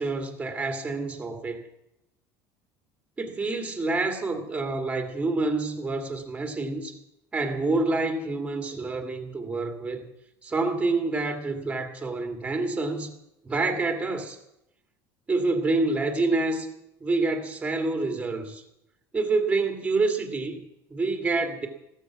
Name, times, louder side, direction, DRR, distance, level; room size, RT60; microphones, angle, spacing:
voice 1, 0.0-1.6 3.2-7.0 7.3-10.0 10.4-13.1 13.4-14.4 15.3-16.7 17.0-18.6 19.1-20.6 20.9-21.7, right 3 dB, 15° right, 5 dB, 2.1 m, -27 dB
15.0 x 14.0 x 6.0 m, 0.85 s
cardioid pair, 145°, 8 cm